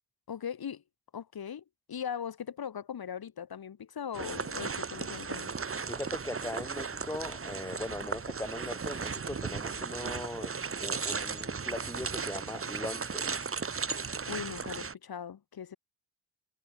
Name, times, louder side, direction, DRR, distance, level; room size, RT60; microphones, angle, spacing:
voice 1, 0.3-0.8 1.1-5.5 14.3-15.8, left 8 dB, 50° left, 2.6 m, -39 dB
sound 1, 4.1-14.9, right 5 dB, 30° right, 1.7 m, -36 dB
voice 2, 5.9-13.3, left 1 dB, 5° left, 2.6 m, -40 dB
supercardioid pair, 65°, 46 cm